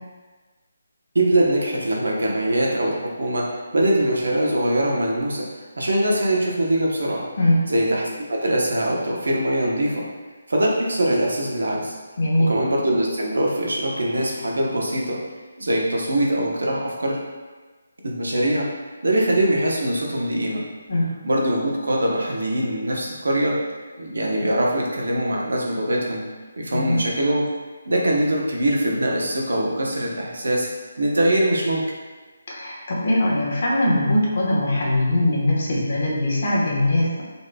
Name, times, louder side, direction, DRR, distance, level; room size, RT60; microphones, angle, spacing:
voice 1, 1.1-7.2 7.7-10.0 10.5-11.9 12.5-15.2 15.6-17.2 18.0-18.7 19.0-20.6 21.2-23.6 24.0-26.2 26.6-27.5 27.9-30.7 31.0-31.8, right 1 dB, 85° right, -2 dB, 1.0 m, -22 dB
voice 2, 12.2-12.5 20.9-21.0 26.7-27.0 32.5-37.2, left 1 dB, 55° left, -4 dB, 1.1 m, -21 dB
5.2 x 3.1 x 2.3 m, 1.3 s
hypercardioid pair, 165°, 0 cm